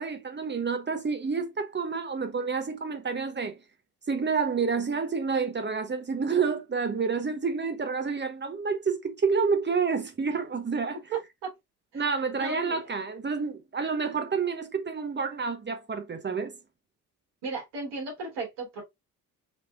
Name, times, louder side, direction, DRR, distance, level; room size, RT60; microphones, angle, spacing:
voice 1, 0.0-3.6 4.1-11.0 11.9-16.5, right 5 dB, 25° right, 1.1 m, -29 dB
voice 2, 12.4-12.8 17.4-18.8, right 2 dB, 65° right, 3.3 m, -35 dB
5.1 x 3.4 x 2.5 m
hypercardioid pair, 50°, 45 cm